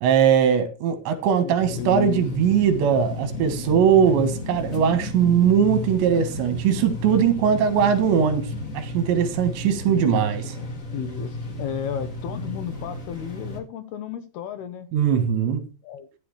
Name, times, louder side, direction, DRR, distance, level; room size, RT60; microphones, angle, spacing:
voice 1, 0.0-10.4 14.9-15.6, right 8 dB, 75° right, 3.7 m, -20 dB
voice 2, 1.4-2.2 9.9-10.3 10.9-14.9 15.8-16.1, left 9 dB, 70° left, 2.7 m, -33 dB
sound 1, 1.6-13.6, left 2 dB, 45° left, 1.0 m, -33 dB
14.0 x 10.5 x 3.3 m
omnidirectional pair, 5.3 m